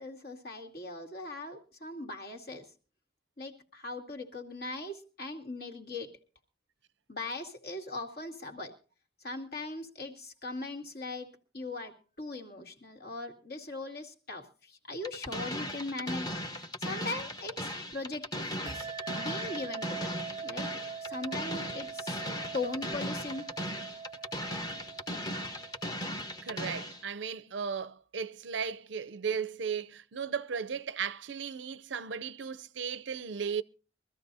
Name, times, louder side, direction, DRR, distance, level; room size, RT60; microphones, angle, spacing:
voice 1, 0.0-2.7 3.4-6.1 7.1-8.8 9.2-16.3 16.5-18.9 19.1-20.7 21.0-22.2 22.5-23.4, left 2 dB, 55° left, 2.4 m, -40 dB
sound 1, 15.0-27.0, equal, 20° left, 1.2 m, -37 dB
sound 2, 18.7-26.8, right 6 dB, 20° right, 0.7 m, -43 dB
voice 2, 26.4-33.6, right 6 dB, 75° right, 0.6 m, -36 dB
23.5 x 14.0 x 2.7 m
head